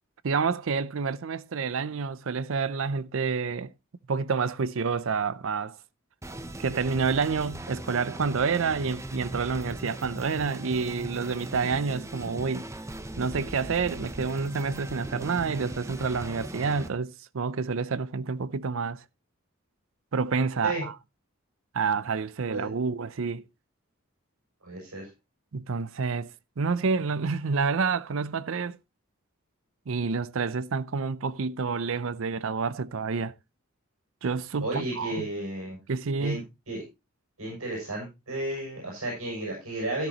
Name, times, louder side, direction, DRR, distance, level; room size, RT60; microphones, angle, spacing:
voice 1, 0.2-3.7 4.1-5.8 6.6-12.7 13.2-19.0 20.1-20.9 21.7-23.4 25.5-28.8 29.9-33.3 34.2-35.3 35.9-36.4, right 5 dB, 65° right, 0.5 m, -28 dB
sound 1, 6.2-16.9, right 1 dB, 15° right, 0.7 m, -38 dB
voice 2, 24.6-25.1 34.6-35.8 36.2-36.4 36.7-36.8 37.4-40.1, right 1 dB, 90° right, 7.2 m, -33 dB
13.0 x 10.5 x 2.9 m
head